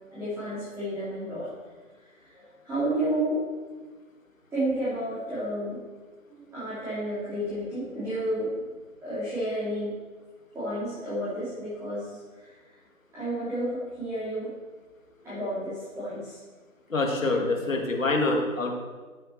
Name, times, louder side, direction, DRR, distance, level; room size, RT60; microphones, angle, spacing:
voice 1, 0.1-1.5 2.3-3.4 4.5-5.8 6.5-8.7 9.0-9.9 10.5-12.5 13.1-14.5 15.2-16.4, right 1 dB, 5° right, -14 dB, 3.1 m, -31 dB
voice 2, 16.9-18.7, left 2 dB, 65° left, 1 dB, 2.5 m, -25 dB
13.5 x 7.9 x 4.7 m, 1.3 s
figure-of-eight pair, 145°, 42 cm